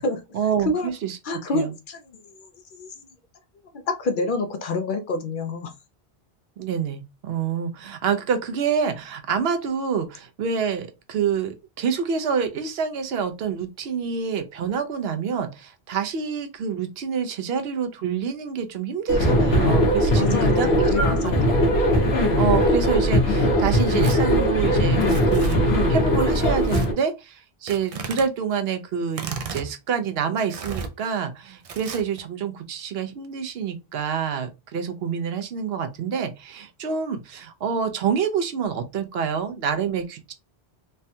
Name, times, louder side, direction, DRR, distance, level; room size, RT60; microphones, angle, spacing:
voice 1, 0.3-1.2 1.5-1.7 6.6-21.3 21.9-22.0 22.4-25.6 25.9-29.2 29.5-40.3, right 6 dB, 75° right, 0.8 m, -27 dB
voice 2, 1.2-2.3 2.7-2.9 3.9-5.7 20.2-21.6, left 2 dB, 60° left, 0.6 m, -27 dB
sound 1, 19.1-26.9, equal, 75° left, 1.1 m, -20 dB
Tearing, 23.7-24.2 25.0-25.6 26.6-26.9 27.7-28.3 29.1-29.7 30.5-30.9 31.6-32.2, right 5 dB, 55° right, 0.4 m, -34 dB
3.3 x 2.2 x 2.6 m
omnidirectional pair, 1.1 m